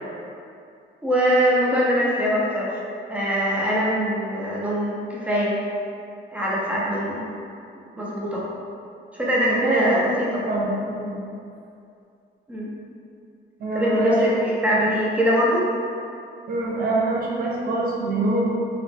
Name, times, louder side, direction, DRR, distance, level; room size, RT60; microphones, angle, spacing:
voice 1, 1.0-2.7 3.1-5.5 6.3-7.2 8.0-8.4 9.2-10.4 12.5-12.7 13.7-14.3 14.6-15.7, equal, 5° right, -6 dB, 0.7 m, -22 dB
voice 2, 9.5-10.0 10.4-11.2 13.6-14.2 14.7-14.8 16.5-18.5, right 2 dB, 50° right, -4 dB, 0.6 m, -24 dB
3.3 x 2.0 x 2.5 m, 2.5 s
cardioid pair, 90°, 20 cm